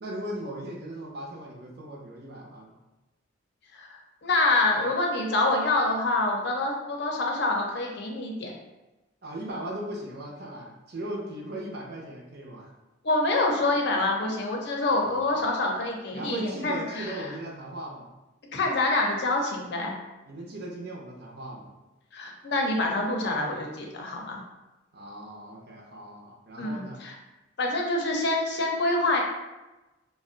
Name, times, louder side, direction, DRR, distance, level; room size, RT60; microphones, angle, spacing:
voice 1, 0.0-2.8 9.2-12.7 15.0-15.4 16.1-18.1 20.3-21.7 24.9-27.1, right 1 dB, 50° right, -2 dB, 0.5 m, -38 dB
voice 2, 3.7-8.5 13.0-17.1 18.5-20.0 22.1-24.4 26.6-27.1 27.6-29.2, left 2 dB, 55° left, 0 dB, 0.6 m, -26 dB
2.5 x 2.0 x 3.7 m, 1.1 s
head